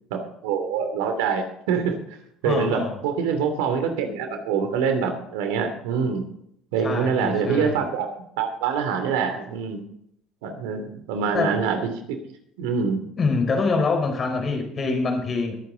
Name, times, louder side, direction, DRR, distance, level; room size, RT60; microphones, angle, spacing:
voice 1, 0.1-2.0 2.4-6.3 6.7-8.1 8.4-9.8 10.4-11.8 12.6-13.0, right 6 dB, 85° right, 7 dB, 2.8 m, -25 dB
voice 2, 2.4-3.0 6.8-7.8 10.5-10.6 11.3-11.5 13.2-15.5, left 4 dB, 35° left, 4 dB, 4.6 m, -25 dB
21.0 x 9.1 x 4.0 m, 0.72 s
supercardioid pair, 80°, 0 cm